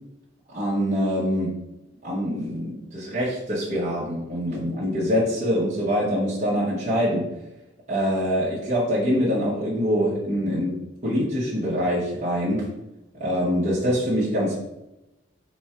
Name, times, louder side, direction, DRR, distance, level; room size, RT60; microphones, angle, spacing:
voice 1, 0.5-1.5 2.0-7.3 7.9-10.7 11.0-12.7 13.2-14.6, equal, 35° right, -7 dB, 1.1 m, -24 dB
4.4 x 2.3 x 4.3 m, 0.91 s
head